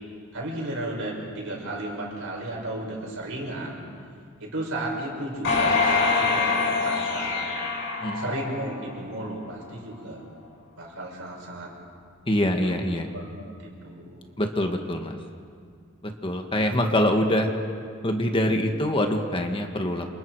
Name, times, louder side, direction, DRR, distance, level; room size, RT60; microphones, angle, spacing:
voice 1, 0.3-3.8 4.4-7.5 8.1-10.2 10.8-11.7 12.6-14.2 16.5-17.0 18.4-18.5, right 1 dB, 65° right, -1 dB, 5.9 m, -34 dB
sound 1, 5.4-8.9 9.4-9.5, left 4 dB, 60° left, 7.6 m, -24 dB
voice 2, 12.3-13.1 14.4-15.2 16.0-17.5 18.0-20.2, left 1 dB, 25° left, 4 dB, 1.6 m, -24 dB
28.5 x 27.0 x 4.8 m, 2.2 s
head